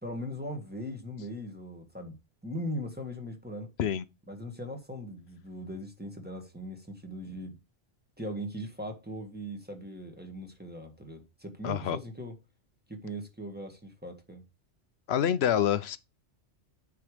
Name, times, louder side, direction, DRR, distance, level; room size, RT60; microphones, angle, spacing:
voice 1, 0.0-2.2 2.4-3.7 4.3-7.6 8.2-12.3 12.9-14.4, equal, 10° right, 1.8 m, -39 dB
voice 2, 11.6-12.0 15.1-16.0, left 9 dB, 60° left, 0.9 m, -26 dB
9.1 x 4.7 x 5.1 m
omnidirectional pair, 1.3 m